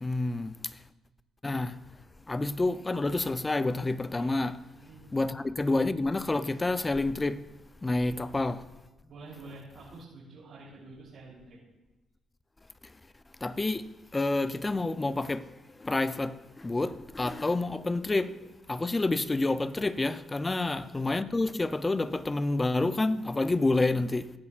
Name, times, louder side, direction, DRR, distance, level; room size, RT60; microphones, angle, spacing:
voice 1, 0.0-0.8 1.4-1.8 2.3-4.6 5.1-7.4 7.8-8.7 12.8-12.9 13.4-24.3, left 2 dB, 20° left, 0.5 m, -29 dB
voice 2, 4.7-5.1 8.1-8.2 9.1-11.6 20.5-20.7, right 3 dB, 70° right, 3.6 m, -48 dB
17.0 x 10.5 x 2.5 m
cardioid pair, 90°, 0 cm